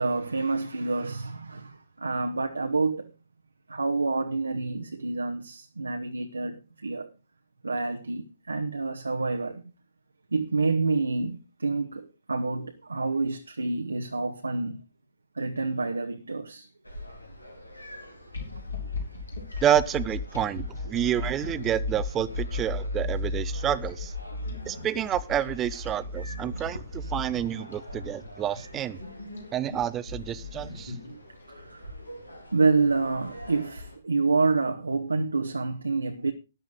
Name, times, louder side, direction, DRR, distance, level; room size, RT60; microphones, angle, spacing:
voice 1, 0.0-3.1 3.7-7.1 7.6-9.7 10.3-14.8 15.3-16.7 27.9-28.0 31.1-31.2 31.5-31.9 32.5-36.3, right 3 dB, 75° right, 1.0 m, -28 dB
sound 1, 16.8-34.0, equal, 85° left, 2.7 m, -46 dB
sound 2, 18.3-31.4, left 2 dB, 70° left, 4.8 m, -35 dB
voice 2, 19.6-24.1 24.7-29.0 29.5-30.9, right 10 dB, 20° right, 0.7 m, -29 dB
13.5 x 10.5 x 3.8 m
figure-of-eight pair, 120°, 0 cm